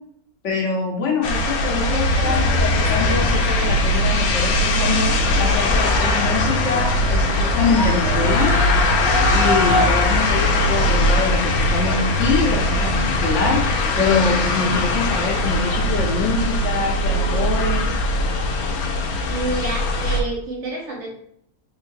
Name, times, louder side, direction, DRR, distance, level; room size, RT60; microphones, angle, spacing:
voice 1, 0.4-8.6 9.3-13.7 14.0-18.0, left 4 dB, 60° left, -1 dB, 1.1 m, -24 dB
sound 1, 1.2-20.2, left 1 dB, 80° left, 1.1 m, -20 dB
sound 2, 2.1-16.4, left 1 dB, 5° left, 0.5 m, -28 dB
voice 2, 19.2-21.1, right 2 dB, 55° right, -1 dB, 1.3 m, -28 dB
3.9 x 3.1 x 2.6 m, 0.67 s
omnidirectional pair, 1.5 m